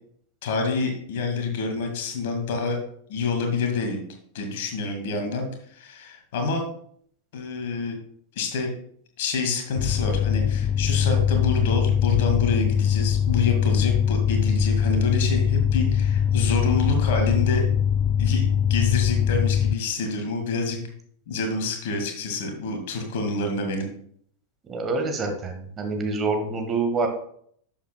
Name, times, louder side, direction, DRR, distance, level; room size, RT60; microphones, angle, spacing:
voice 1, 0.4-2.8 3.1-4.0 4.3-6.6 7.3-8.0 8.4-8.7 9.2-17.7 18.2-20.8 21.3-23.9, left 4 dB, 55° left, 4 dB, 2.0 m, -27 dB
sound 1, 9.8-19.7, left 8 dB, 35° left, 0.3 m, -22 dB
voice 2, 24.7-27.1, right 3 dB, 25° right, 4 dB, 1.6 m, -26 dB
11.5 x 7.3 x 2.3 m, 0.64 s
figure-of-eight pair, 90°, 0 cm